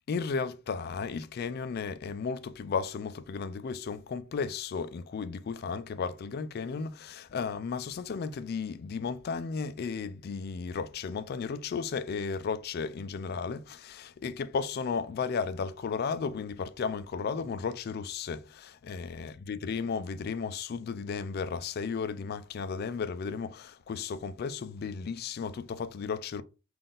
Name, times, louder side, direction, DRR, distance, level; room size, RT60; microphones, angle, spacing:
voice 1, 0.1-26.4, left 5 dB, 50° left, 0.3 m, -34 dB
3.8 x 2.5 x 3.7 m
head